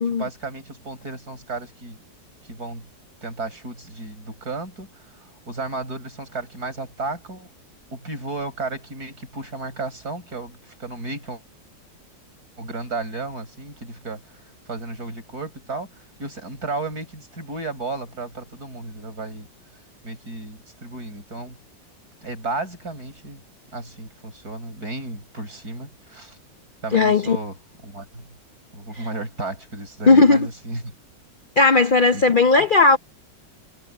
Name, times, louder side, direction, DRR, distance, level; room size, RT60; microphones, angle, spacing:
voice 1, 0.1-2.0 2.5-2.9 3.2-4.9 5.5-7.5 7.9-11.4 12.6-14.2 14.7-15.9 16.2-19.5 20.0-21.6 22.2-23.4 23.7-26.4 26.8-27.6 27.8-28.2 28.7-30.9 32.1-32.2, right 2 dB, 55° right, 7.5 m, -33 dB
voice 2, 26.9-27.4 29.0-29.1 30.1-30.5 31.6-33.0, left 3 dB, 50° left, 0.6 m, -16 dB
omnidirectional pair, 1.9 m